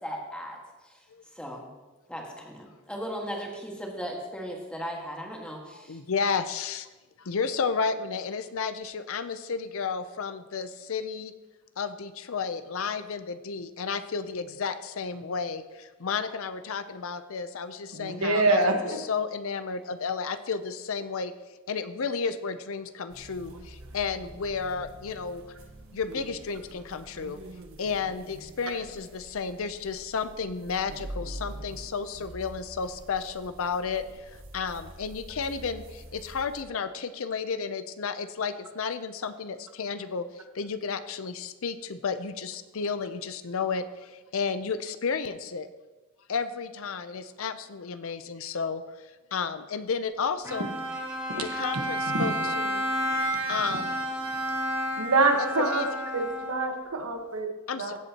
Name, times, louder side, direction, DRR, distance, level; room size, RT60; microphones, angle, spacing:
voice 1, 0.0-1.0 1.3-1.7 2.1-6.0, equal, 5° left, -1 dB, 1.7 m, -37 dB
voice 2, 5.7-6.9 7.2-11.3 11.8-21.3 21.7-25.4 25.9-27.4 27.8-45.7 46.3-48.8 49.3-50.7 51.3-52.9 53.5-53.9 55.4-55.9 57.7-58.0, left 5 dB, 65° left, 12 dB, 0.6 m, -32 dB
voice 3, 17.9-19.0 52.1-52.2 55.0-55.9 56.1-57.5 57.8-58.0, right 2 dB, 85° right, 4 dB, 1.3 m, -25 dB
sound 1, 23.1-36.6, right 1 dB, 65° right, 1.2 m, -45 dB
Bowed string instrument, 50.4-56.9, right 1 dB, 15° right, 2.5 m, -31 dB
16.0 x 8.2 x 2.9 m, 1.2 s
head